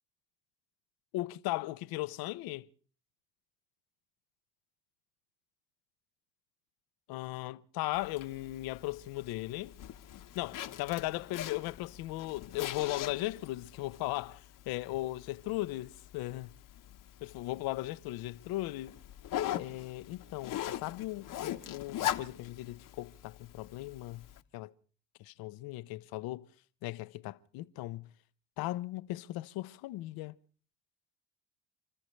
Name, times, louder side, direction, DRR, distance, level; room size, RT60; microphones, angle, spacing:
voice 1, 1.1-2.7 7.1-9.7 10.3-16.5 17.2-19.0 19.6-24.3 24.5-24.7 25.2-26.5 26.8-28.1 28.6-30.3, left 18 dB, 70° left, 0.8 m, -37 dB
Zipper (clothing), 7.9-24.4, left 12 dB, 55° left, 1.1 m, -42 dB
30.0 x 13.5 x 3.2 m
supercardioid pair, 80°, 37 cm